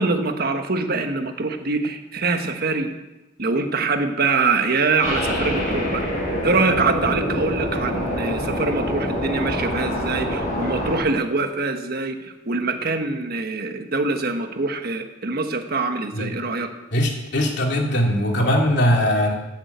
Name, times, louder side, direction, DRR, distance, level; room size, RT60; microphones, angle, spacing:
voice 1, 0.0-2.9 3.4-6.0 6.4-16.7, right 3 dB, 55° right, 6 dB, 1.4 m, -24 dB
sound 1, 5.0-11.0, equal, 40° left, 5.7 m, -26 dB
voice 2, 16.9-19.3, equal, 65° left, 0 dB, 2.9 m, -20 dB
15.0 x 7.4 x 8.1 m, 1.0 s
head